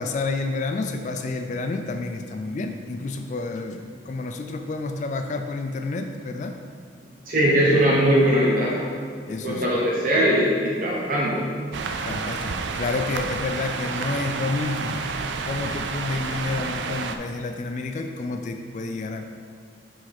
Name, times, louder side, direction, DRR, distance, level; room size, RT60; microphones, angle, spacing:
voice 1, 0.0-6.6 9.3-9.8 10.1-10.2 12.0-15.0 15.4-19.4, left 3 dB, 40° left, 6 dB, 0.3 m, -29 dB
voice 2, 7.3-8.7 9.4-11.4, equal, 45° right, -5 dB, 0.9 m, -20 dB
sound 1, 11.7-17.2, right 4 dB, 80° right, 0.4 m, -30 dB
6.0 x 4.9 x 4.3 m, 2.1 s
head